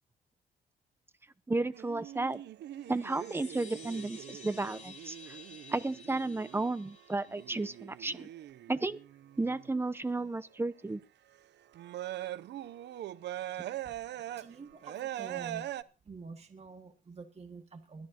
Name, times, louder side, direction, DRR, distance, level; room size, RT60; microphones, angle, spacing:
voice 1, 1.5-2.4 2.9-5.4 5.7-8.3 8.7-9.0 9.4-11.0, right 2 dB, 10° right, 0.7 m, -33 dB
sound 1, 1.7-9.7 10.1-10.2 11.0-11.1 11.7-15.8, right 13 dB, 70° right, 0.6 m, -42 dB
sound 2, 2.7-7.8, left 5 dB, 40° left, 4.2 m, -53 dB
voice 2, 14.4-15.7 16.1-18.1, right 4 dB, 35° right, 1.8 m, -47 dB
21.5 x 13.0 x 2.9 m
cardioid pair, 95°, 19 cm